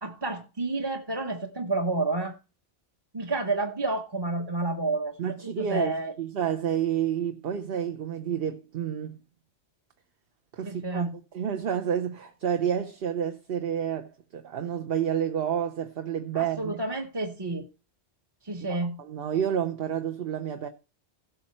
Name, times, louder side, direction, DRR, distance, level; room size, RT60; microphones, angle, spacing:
voice 1, 0.0-2.4 3.1-6.1 10.6-11.1 16.3-17.7 18.4-19.0, right 2 dB, 25° right, 0.9 m, -30 dB
voice 2, 5.2-9.2 10.5-16.8 18.7-20.7, right 9 dB, 60° right, 1.0 m, -30 dB
16.5 x 6.4 x 4.3 m
omnidirectional pair, 1.2 m